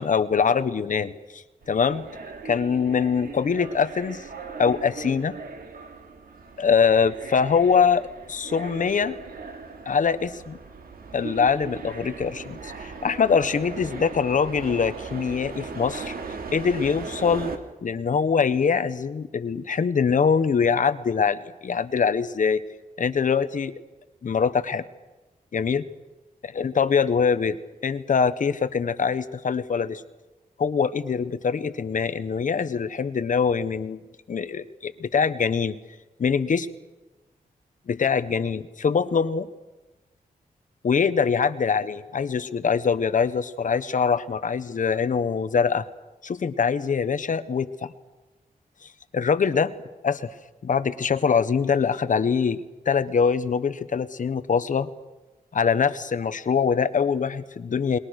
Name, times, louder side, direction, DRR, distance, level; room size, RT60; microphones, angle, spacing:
voice 1, 0.0-2.0 2.4-4.2 4.6-5.3 6.6-9.1 9.9-10.6 11.1-16.1 16.5-17.5 17.8-22.6 23.0-23.7 24.2-24.8 25.5-25.8 26.5-30.0 30.6-34.0 34.3-35.7 36.2-36.7 37.9-39.5 40.8-45.8 46.2-47.9 49.1-49.7 50.0-50.3 50.6-54.9 55.5-58.0, left 6 dB, 60° left, 13 dB, 1.2 m, -23 dB
sound 1, 1.6-17.6, right 4 dB, 75° right, 2.6 m, -38 dB
29.0 x 21.5 x 6.5 m, 1.1 s
wide cardioid pair, 135°, 15 cm